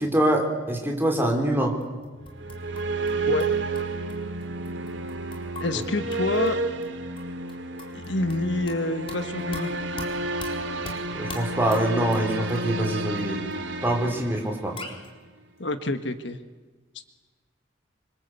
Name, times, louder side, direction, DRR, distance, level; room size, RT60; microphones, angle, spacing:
voice 1, 0.0-1.8 11.1-13.4 13.8-14.8, right 1 dB, 10° right, 1 dB, 4.7 m, -24 dB
sound 1, 1.8-3.1 3.4-6.5 6.8-6.9 7.2-8.8 9.1-12.9 13.2-13.3 13.5-13.6 14.2-14.3 14.5-14.6 14.8-15.1, left 2 dB, 30° left, 4.2 m, -42 dB
sound 2, 2.2-15.1, right 2 dB, 70° right, 2.5 m, -31 dB
voice 2, 5.6-6.6 7.9-9.7 15.6-16.4, left 2 dB, 65° left, 9 dB, 1.6 m, -27 dB
27.5 x 25.0 x 8.3 m, 1.4 s
head